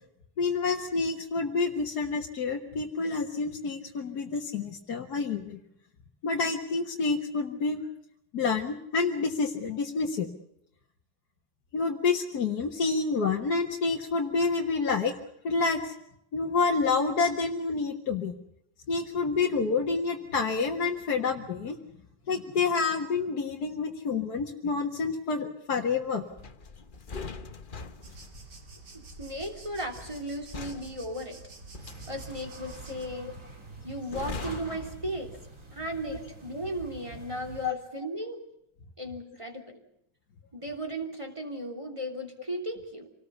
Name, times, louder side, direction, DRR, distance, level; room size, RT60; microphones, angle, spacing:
voice 1, 0.4-5.6 6.2-7.8 8.3-10.3 11.7-15.1 15.4-15.9 16.3-18.3 18.9-21.8 22.3-26.3 37.6-37.8, left 4 dB, 55° left, 0 dB, 2.0 m, -28 dB
sound 1, 26.4-35.7 36.0-36.3, left 4 dB, 35° left, 0.9 m, -43 dB
sound 2, 28.0-33.1, right 3 dB, 55° right, 3.1 m, -49 dB
voice 2, 28.9-31.4 32.1-33.3 33.8-35.3 35.7-38.4 39.0-39.8 40.5-43.1, right 1 dB, 15° right, 3 dB, 3.2 m, -36 dB
sound 3, 31.8-37.7, right 2 dB, 40° right, 3.8 m, -46 dB
26.5 x 19.5 x 7.0 m, 0.78 s
omnidirectional pair, 2.1 m